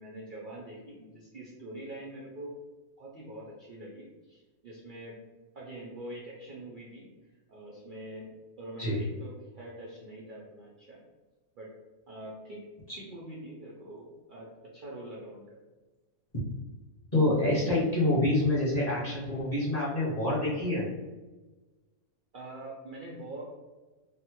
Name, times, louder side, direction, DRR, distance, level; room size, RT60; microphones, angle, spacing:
voice 1, 0.0-2.5 3.0-5.2 5.5-7.1 7.5-8.3 8.6-11.0 11.6-11.7 12.1-12.6 13.0-15.6 22.3-23.4, right 1 dB, 85° right, -5 dB, 0.4 m, -44 dB
voice 2, 17.1-20.9, left 2 dB, 30° left, -7 dB, 0.8 m, -26 dB
3.5 x 2.0 x 2.9 m, 1.2 s
omnidirectional pair, 1.6 m